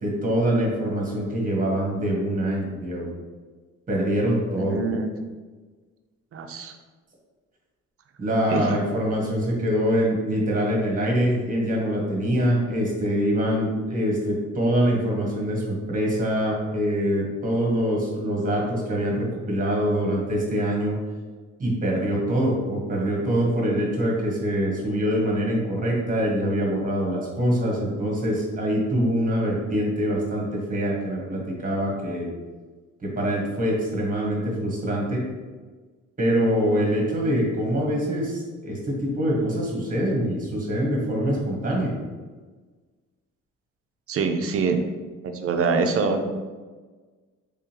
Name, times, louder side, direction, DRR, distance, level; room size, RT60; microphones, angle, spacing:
voice 1, 0.0-3.1 3.9-4.8 8.2-21.0 21.6-32.3 33.0-35.2 36.2-41.9, equal, 25° right, -2 dB, 1.3 m, -24 dB
voice 2, 4.6-5.1 6.3-6.7 8.5-8.7 44.1-44.8 45.2-46.2, right 4 dB, 50° right, 6 dB, 0.5 m, -24 dB
3.6 x 3.3 x 3.0 m, 1.4 s
cardioid pair, 90°, 30 cm